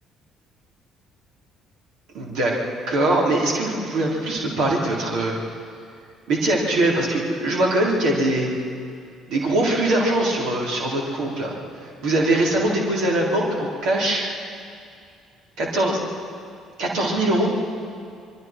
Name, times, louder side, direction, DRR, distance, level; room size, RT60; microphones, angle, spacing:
voice 1, 2.1-2.6 2.9-5.4 6.3-8.5 9.3-11.5 12.0-14.2 15.6-16.0 16.8-17.5, right 1 dB, 60° right, -2 dB, 3.9 m, -22 dB
25.5 x 23.5 x 4.6 m, 2.4 s
figure-of-eight pair, 50°, 0 cm